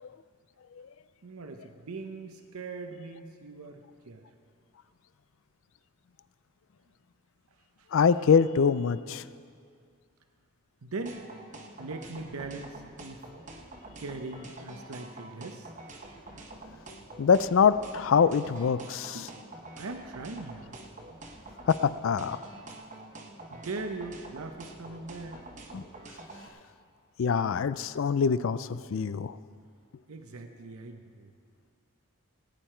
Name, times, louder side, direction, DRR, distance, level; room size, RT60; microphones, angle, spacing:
voice 1, 1.2-4.2 7.8-7.9 10.8-11.2 11.8-13.3 14.0-15.7 19.1-19.4 19.8-20.7 23.5-25.5 30.1-31.3, right 3 dB, 85° right, 6 dB, 0.7 m, -40 dB
voice 2, 7.9-9.2 17.2-19.2 21.7-22.4 25.7-25.8 27.2-29.3, left 6 dB, 65° left, 15 dB, 0.4 m, -24 dB
sound 1, 11.1-26.5, right 2 dB, 35° right, 1.0 m, -46 dB
18.5 x 9.3 x 4.5 m, 2.3 s
head